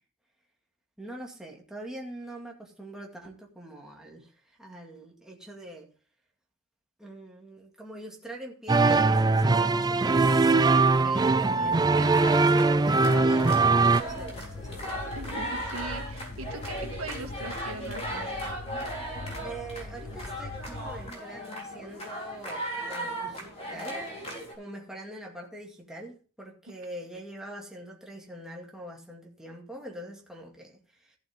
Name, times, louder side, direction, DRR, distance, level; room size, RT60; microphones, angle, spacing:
voice 1, 1.0-4.3 4.6-5.9 7.0-11.8 12.2-14.8 19.4-24.0 24.5-30.8, right 1 dB, 5° right, 2.2 m, -43 dB
sound 1, 8.7-14.0, right 3 dB, 20° right, 0.4 m, -21 dB
sound 2, 11.9-24.5, right 1 dB, 30° left, 3.8 m, -37 dB
sound 3, 12.6-21.1, left 2 dB, 60° left, 1.0 m, -42 dB
voice 2, 15.1-18.2, right 2 dB, 65° right, 2.3 m, -40 dB
14.5 x 8.1 x 3.6 m
head